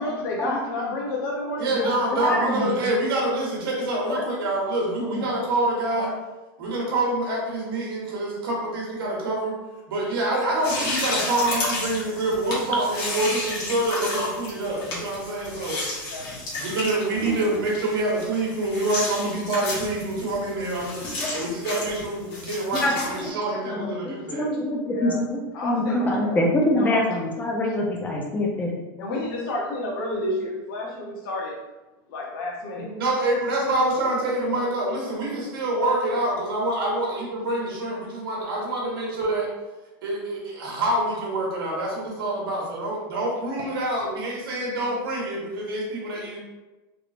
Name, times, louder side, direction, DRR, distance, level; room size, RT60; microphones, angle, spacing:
voice 1, 0.0-1.9 2.2-2.6 5.9-6.1 16.1-16.3 24.9-25.2 25.5-27.2 27.6-27.8 29.0-31.5 32.1-32.9 43.6-43.7, left 1 dB, 75° left, -2 dB, 0.8 m, -30 dB
voice 2, 1.6-6.1 6.6-9.6 9.9-15.8 16.5-24.5 32.7-39.5 40.0-46.4, right 1 dB, 85° right, -3 dB, 1.3 m, -26 dB
voice 3, 2.1-2.8 4.1-4.2 5.0-5.2 21.2-21.3 22.8-22.9 23.7-28.7, left 1 dB, 15° left, 0 dB, 0.6 m, -25 dB
sound 1, 10.6-23.3, left 2 dB, 40° left, 1.2 m, -32 dB
3.3 x 3.0 x 2.5 m, 1.1 s
supercardioid pair, 145°, 12 cm